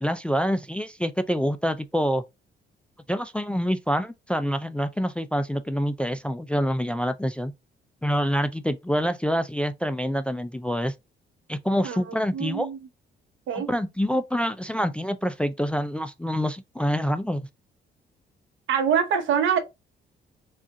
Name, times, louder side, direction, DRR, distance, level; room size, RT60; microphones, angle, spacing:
voice 1, 0.0-2.2 3.1-7.5 8.0-10.9 11.5-12.7 13.5-17.5, equal, 5° left, 0.3 m, -26 dB
voice 2, 12.3-12.8 13.5-13.7 18.7-19.6, right 7 dB, 75° right, 0.8 m, -24 dB
3.7 x 2.4 x 3.6 m
cardioid pair, 90°, 20 cm